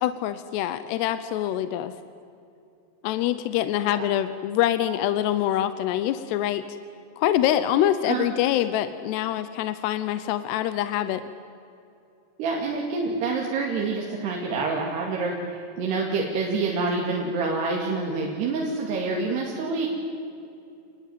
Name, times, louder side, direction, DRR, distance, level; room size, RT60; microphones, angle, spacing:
voice 1, 0.0-1.9 3.0-6.6 7.2-11.2, left 12 dB, 80° left, 12 dB, 2.9 m, -25 dB
voice 2, 12.4-19.9, right 3 dB, 70° right, -1 dB, 4.3 m, -27 dB
28.5 x 21.0 x 9.3 m, 2.6 s
omnidirectional pair, 5.0 m